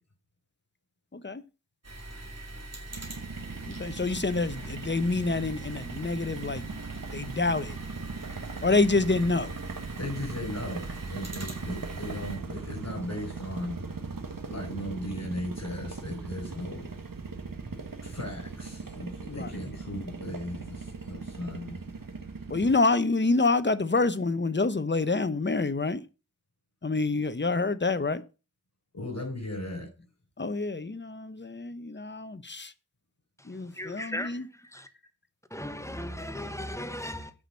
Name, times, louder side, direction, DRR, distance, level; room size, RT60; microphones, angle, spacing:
voice 1, 1.1-1.4 3.7-6.7 7.1-7.8 8.6-9.5 19.3-19.6 22.5-26.0 26.8-28.2 30.4-32.7 33.4-34.4, left 3 dB, 35° left, 1.0 m, -27 dB
sound 1, 1.8-12.4, right 2 dB, 50° right, 3.1 m, -43 dB
sound 2, 2.9-22.8, right 4 dB, 75° right, 1.6 m, -39 dB
voice 2, 10.0-13.8 14.5-16.9 18.0-21.8 28.9-29.9 34.7-34.8, left 1 dB, 50° left, 5.0 m, -37 dB
voice 3, 33.4-34.9 35.5-37.3, left 1 dB, 10° left, 1.2 m, -37 dB
8.9 x 6.2 x 6.4 m
wide cardioid pair, 60°, 33 cm